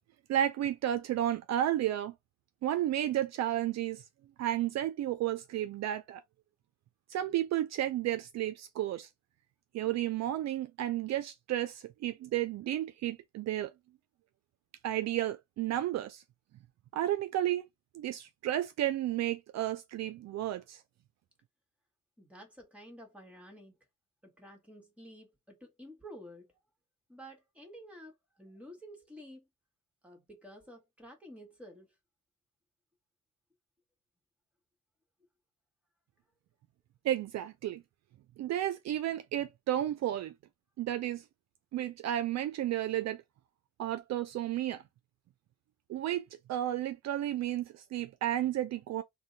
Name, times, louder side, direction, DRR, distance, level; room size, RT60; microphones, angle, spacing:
voice 1, 0.3-2.1 2.6-4.0 4.4-6.2 7.1-9.1 9.7-13.7 14.8-16.2 16.9-17.7 17.9-20.8 37.0-37.8 38.4-40.3 40.8-41.2 41.7-43.2 43.8-44.8 45.9-49.0, right 12 dB, 65° right, 0.4 m, -32 dB
voice 2, 22.2-23.8 24.2-26.5 27.1-29.5 30.0-31.9, equal, 5° right, 1.4 m, -51 dB
2.6 x 2.2 x 3.9 m
cardioid pair, 90°, 30 cm